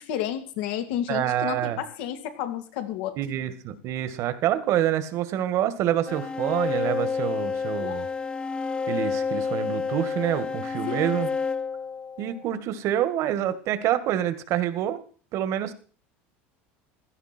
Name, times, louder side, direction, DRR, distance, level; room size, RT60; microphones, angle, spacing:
voice 1, 0.0-3.2 7.8-8.1 10.9-11.0, left 11 dB, 75° left, 8 dB, 2.3 m, -31 dB
voice 2, 1.1-1.8 3.2-8.1 8.9-11.3 12.2-15.0 15.3-15.7, right 11 dB, 55° right, 12 dB, 2.0 m, -27 dB
sound 1, 6.1-12.6, left 5 dB, 15° left, 1.1 m, -29 dB
16.5 x 13.0 x 4.5 m, 0.42 s
supercardioid pair, 105°, 6 cm